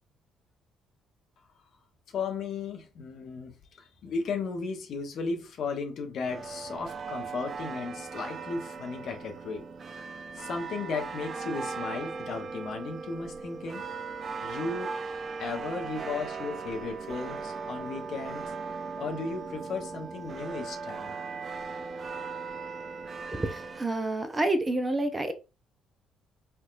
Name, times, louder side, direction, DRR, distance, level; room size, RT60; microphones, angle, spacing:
voice 1, 2.1-9.6 10.3-13.8 14.4-14.9 15.4-18.4 19.0-21.2, left 4 dB, 55° left, 0.8 m, -35 dB
sound 1, 6.3-23.9, right 4 dB, 40° right, 0.4 m, -38 dB
voice 2, 23.3-25.3, right 2 dB, 20° right, 0.7 m, -28 dB
4.5 x 2.7 x 2.4 m
figure-of-eight pair, 45°, 0 cm